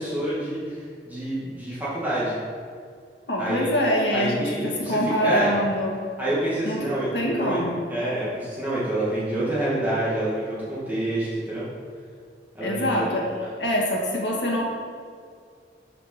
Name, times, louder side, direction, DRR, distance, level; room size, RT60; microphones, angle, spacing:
voice 1, 0.0-2.3 3.4-3.7 4.1-5.5 6.2-7.6 7.9-11.6 12.5-13.0, right 1 dB, 10° right, -10 dB, 2.0 m, -27 dB
voice 2, 3.3-6.0 6.6-6.8 7.1-7.8 12.6-13.3 13.6-14.6, equal, 85° left, -2 dB, 1.8 m, -24 dB
6.2 x 6.1 x 6.1 m, 2.1 s
head